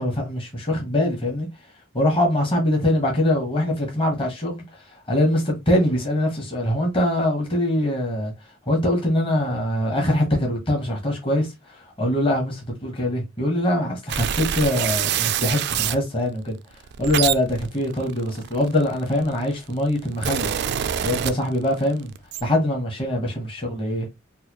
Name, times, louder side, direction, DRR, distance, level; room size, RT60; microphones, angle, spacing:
voice 1, 0.0-1.5 1.9-8.3 8.7-16.6 17.0-20.5 21.0-22.1 22.4-24.1, left 1 dB, 25° left, 1.0 m, -23 dB
sound 1, 14.1-16.0 16.7-19.1 19.8-21.8 22.1-22.4, right 9 dB, 55° right, 0.3 m, -26 dB
4.0 x 2.1 x 2.9 m
head